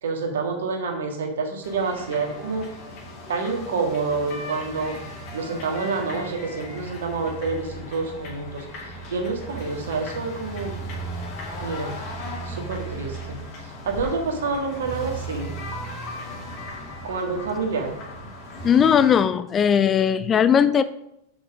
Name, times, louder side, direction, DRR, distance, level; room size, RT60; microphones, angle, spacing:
voice 1, 0.0-2.7 3.3-5.0 5.3-10.8 11.6-11.9 12.4-15.6 17.0-18.0, right 4 dB, 60° right, 3 dB, 1.6 m, -28 dB
sound 1, 1.6-19.2, equal, 40° left, 2.3 m, -36 dB
voice 2, 18.6-20.8, left 8 dB, 25° left, 13 dB, 0.3 m, -18 dB
6.2 x 5.3 x 6.2 m, 0.82 s
figure-of-eight pair, 90°, 0 cm